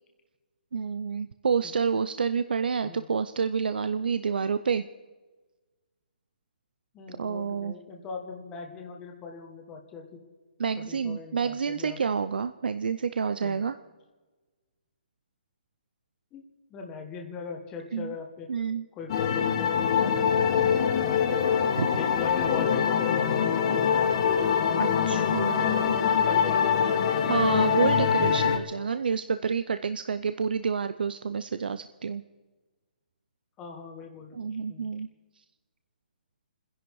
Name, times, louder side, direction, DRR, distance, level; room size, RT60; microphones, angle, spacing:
voice 1, 0.7-4.8 7.1-7.8 10.6-13.8 17.9-18.1 18.5-18.9 21.8-21.9 24.8-25.8 27.3-32.2 34.3-35.1, right 6 dB, 75° right, 11 dB, 0.6 m, -29 dB
voice 2, 6.9-10.2 10.8-12.0 13.4-13.6 16.3-16.4 16.7-18.5 18.9-20.1 20.5-21.4 22.0-24.0 25.2-27.6 28.2-28.4 33.6-34.9, left 5 dB, 15° left, 2 dB, 1.4 m, -40 dB
sound 1, 19.1-28.6, left 7 dB, 30° left, 1.4 m, -24 dB
28.0 x 11.0 x 4.8 m, 1.3 s
hypercardioid pair, 170°, 5 cm